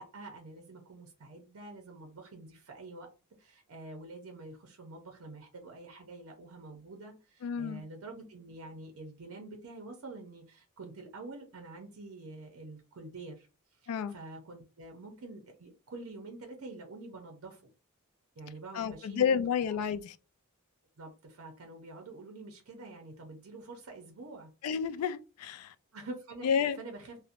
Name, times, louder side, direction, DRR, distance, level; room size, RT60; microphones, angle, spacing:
voice 1, 0.0-3.1 3.4-13.5 13.8-17.6 18.4-19.4 19.7-19.8 21.0-24.5 25.9-26.5 26.8-27.2, right 2 dB, 70° right, 0.6 m, -47 dB
voice 2, 7.4-7.8 13.9-14.1 18.7-20.1 24.6-25.7 26.4-26.8, left 7 dB, 80° left, 0.3 m, -30 dB
2.8 x 2.0 x 2.4 m
head